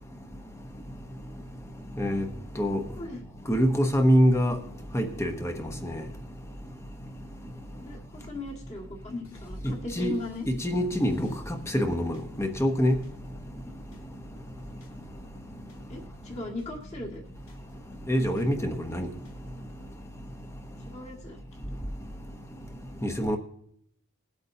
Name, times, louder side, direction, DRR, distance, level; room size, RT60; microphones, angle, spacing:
voice 1, 2.0-2.3 2.6-2.8 3.5-4.6 4.9-5.5 5.8-6.0 9.6-10.2 10.5-11.3 11.7-12.9 18.1-19.1 23.0-23.4, equal, 10° left, 0.8 m, -25 dB
voice 2, 2.9-3.2 7.8-10.5 15.9-17.2 20.9-21.4, left 2 dB, 30° left, 1.9 m, -38 dB
sound 1, 9.2-19.9, right 1 dB, 70° left, 2.1 m, -55 dB
20.5 x 8.2 x 2.7 m
head